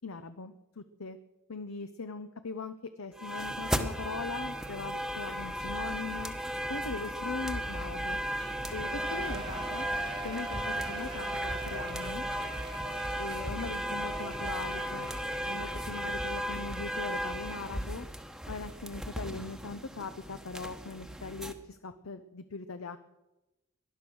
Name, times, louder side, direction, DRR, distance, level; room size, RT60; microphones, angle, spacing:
voice 1, 0.0-1.2 1.5-6.3 6.7-8.2 8.7-9.9 10.2-12.2 13.2-15.1 15.4-18.1 18.5-23.0, left 4 dB, 85° left, 10 dB, 0.8 m, -40 dB
sound 1, 3.2-21.5, equal, ahead, 1.0 m, -35 dB
Shout / Cheering, 8.4-16.7 17.1-17.2, right 4 dB, 25° right, 0.8 m, -45 dB
19.0 x 11.5 x 6.3 m, 1.0 s
head